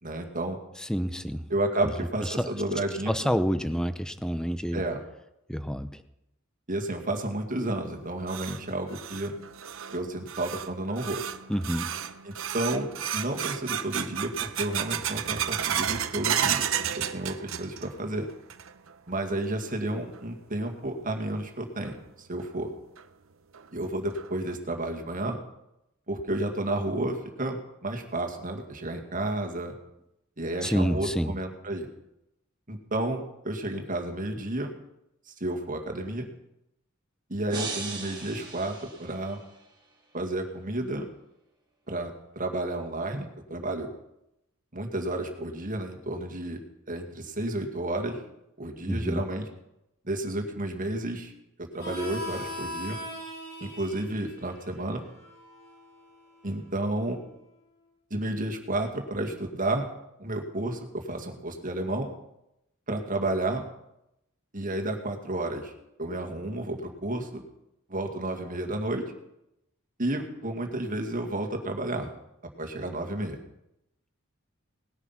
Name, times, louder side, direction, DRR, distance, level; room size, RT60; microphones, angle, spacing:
voice 1, 0.0-0.6 1.5-3.1 4.7-5.0 6.7-9.3 9.9-11.2 12.2-12.9 13.1-16.7 17.0-18.3 19.1-22.7 23.7-25.4 26.1-29.7 30.4-31.9 32.7-34.7 35.4-36.3 37.3-39.4 40.1-41.1 41.9-43.9 44.7-46.6 46.9-48.2 48.6-49.5 50.0-51.3 51.6-53.0 53.6-55.0 56.4-57.2 58.1-59.9 60.2-62.1 62.9-63.7 64.5-65.7 66.0-67.4 67.9-69.0 70.0-72.1 72.6-73.4, right 1 dB, 40° right, 3 dB, 2.1 m, -31 dB
voice 2, 0.8-1.5 2.2-2.5 3.1-4.8 5.5-6.0 11.5-11.9 30.6-31.3 48.9-49.2, equal, 5° left, 10 dB, 0.7 m, -28 dB
sound 1, 7.9-18.0 18.3-18.9 19.3-19.4 20.1-20.2 21.8-21.9 22.4-22.5 23.0-23.1 23.5-23.6 24.2-24.5, right 9 dB, 75° right, 0.8 m, -32 dB
sound 2, 37.5-39.6, right 4 dB, 20° right, 2.6 m, -38 dB
Harmonica, 51.8-57.1, equal, 55° left, 7.1 m, -41 dB
19.0 x 9.8 x 5.8 m, 0.86 s
head